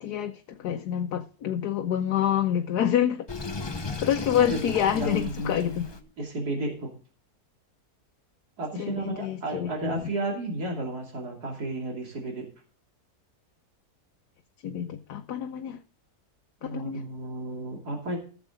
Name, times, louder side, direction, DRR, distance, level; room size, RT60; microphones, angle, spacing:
voice 1, 0.0-3.3 4.0-5.9 8.8-10.1 14.6-15.8 16.6-17.1, left 10 dB, 85° left, 1.3 m, -27 dB
Sink (filling or washing), 3.3-6.0, left 4 dB, 25° left, 0.6 m, -36 dB
voice 2, 4.4-5.7 6.2-6.9 8.6-12.5 16.6-18.2, right 2 dB, 75° right, 3.3 m, -33 dB
15.5 x 7.3 x 3.8 m
omnidirectional pair, 1.7 m